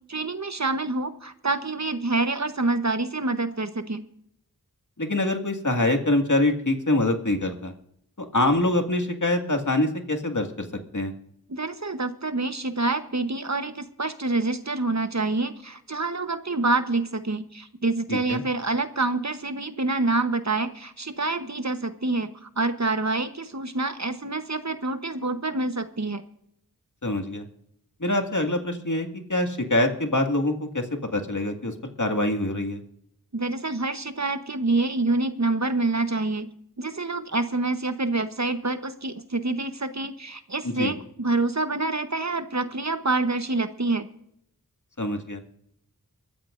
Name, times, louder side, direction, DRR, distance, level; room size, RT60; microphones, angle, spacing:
voice 1, 0.1-4.1 11.5-26.2 33.3-36.5 36.8-44.1, right 3 dB, 50° right, 9 dB, 1.1 m, -27 dB
voice 2, 5.0-7.7 8.2-10.7 10.9-11.1 18.1-18.4 27.0-27.4 28.0-30.8 31.1-32.8 40.6-40.9 45.0-45.4, left 1 dB, 55° left, 3 dB, 2.1 m, -25 dB
23.5 x 13.5 x 2.6 m, 0.71 s
wide cardioid pair, 40°, 36 cm